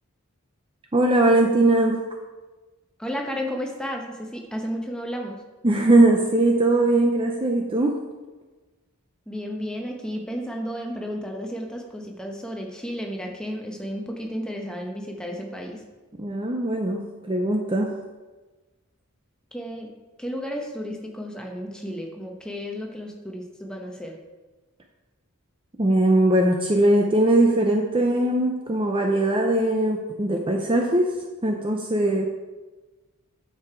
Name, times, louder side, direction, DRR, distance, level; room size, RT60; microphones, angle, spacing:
voice 1, 0.9-2.0 5.6-8.0 16.2-18.0 25.8-31.1 31.4-32.3, right 1 dB, 25° right, 2 dB, 0.6 m, -20 dB
voice 2, 3.0-5.4 9.3-15.8 19.5-19.9 20.2-24.2, equal, 5° left, 1 dB, 1.0 m, -33 dB
9.3 x 6.8 x 4.5 m, 1.2 s
head